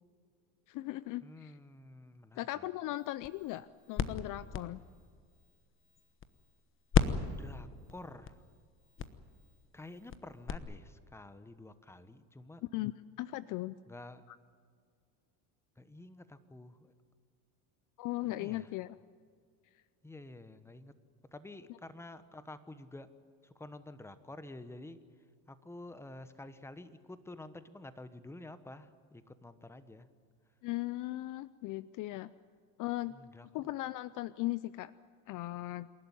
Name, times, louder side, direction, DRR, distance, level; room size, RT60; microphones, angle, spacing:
voice 1, 0.7-1.5 2.4-4.8 12.7-12.9 13.2-13.8 18.0-18.9 30.6-32.3 32.8-33.1 33.5-34.9 35.3-35.9, left 17 dB, 50° left, 17 dB, 0.6 m, -38 dB
voice 2, 1.2-2.7 7.0-8.4 9.7-12.6 13.9-14.2 15.8-16.9 18.4-18.7 20.0-20.9 21.3-23.1 23.4-25.0 25.5-30.1 33.1-33.5, left 2 dB, 5° left, 12 dB, 1.1 m, -50 dB
sound 1, 3.0-6.6 6.9-10.6, left 7 dB, 30° left, 1.1 m, -36 dB
27.5 x 11.5 x 9.9 m, 2.2 s
supercardioid pair, 115°, 42 cm